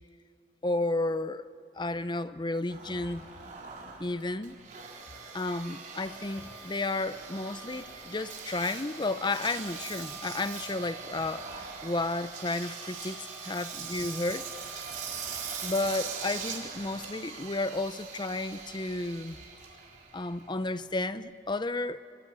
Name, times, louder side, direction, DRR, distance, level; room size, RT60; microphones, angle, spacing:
voice 1, 0.6-1.5 1.7-3.3 4.0-4.6 5.3-14.5 15.6-19.4 20.1-22.1, left 2 dB, 25° left, 0.7 m, -32 dB
Engine, 2.7-21.1, right 5 dB, 45° right, 4.1 m, -41 dB
28.0 x 27.0 x 7.6 m
head